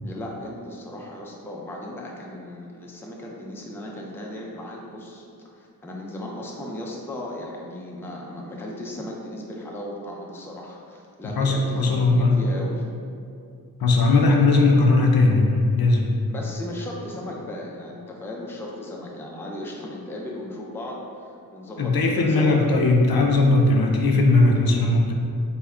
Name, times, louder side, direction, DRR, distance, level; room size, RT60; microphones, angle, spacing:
voice 1, 0.0-12.8 16.3-22.7, left 1 dB, 5° left, -2 dB, 0.3 m, -36 dB
voice 2, 11.4-12.4 13.8-16.1 21.8-25.1, left 2 dB, 70° left, 1 dB, 0.5 m, -18 dB
3.4 x 2.1 x 3.5 m, 2.4 s
wide cardioid pair, 75°, 37 cm